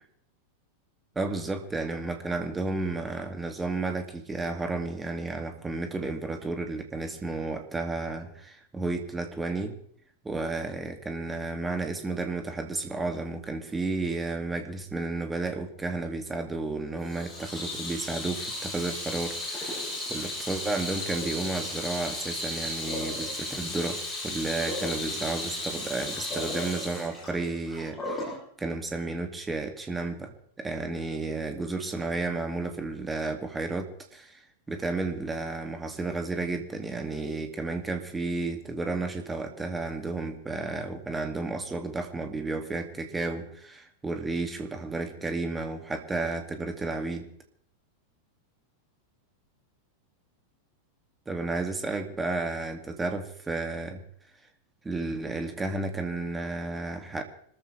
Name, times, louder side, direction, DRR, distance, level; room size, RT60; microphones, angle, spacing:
voice 1, 1.2-9.8 10.2-34.4 34.7-47.3 51.3-54.0 54.8-57.2, right 3 dB, 10° right, 5 dB, 2.4 m, -32 dB
Water tap faucet / Sink (filling or washing), 17.0-28.4, left 1 dB, 15° left, 7.8 m, -34 dB
26.0 x 14.0 x 3.4 m, 0.64 s
figure-of-eight pair, 90°, 0 cm